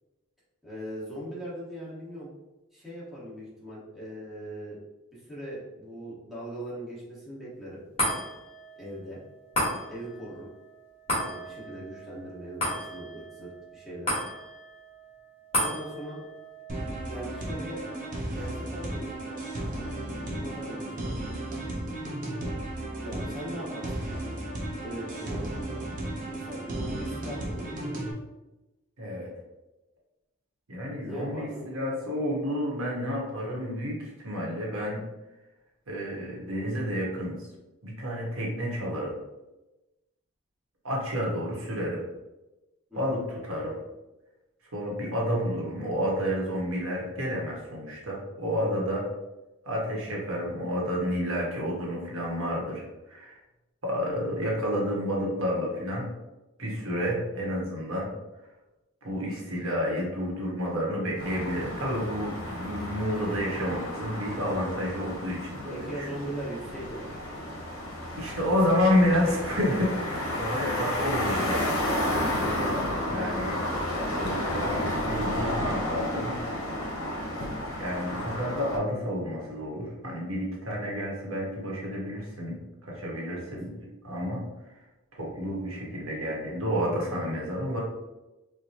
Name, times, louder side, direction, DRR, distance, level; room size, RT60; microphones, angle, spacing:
voice 1, 0.6-2.3 2.7-4.8 5.1-7.8 8.8-9.2 9.9-10.5 11.1-14.2 15.5-16.3 17.0-17.9 18.3-19.4 20.2-21.3 23.0-24.3 24.8-25.8 26.2-28.0 31.0-31.7 42.9-43.2 48.5-48.9 65.7-67.0 83.3-83.5, right 1 dB, ahead, -10 dB, 1.1 m, -40 dB
sound 1, 8.0-20.6 21.0-21.1, equal, 25° left, 1.4 m, -35 dB
sound 2, 16.7-28.1, right 1 dB, 40° right, 0.6 m, -34 dB
voice 2, 29.0-29.3 30.7-35.0 35.9-37.4 37.8-39.1 40.8-42.0 42.9-43.8 44.7-49.0 49.6-53.4 53.8-56.1 56.6-58.1 59.0-66.1 68.1-71.9 72.3-73.6 74.1-76.4 77.8-84.4 84.7-84.8 85.2-87.8, equal, 75° right, -3 dB, 1.0 m, -30 dB
sound 3, 61.2-78.8, left 1 dB, 65° left, 0.8 m, -31 dB
4.4 x 2.1 x 2.7 m, 1.0 s
head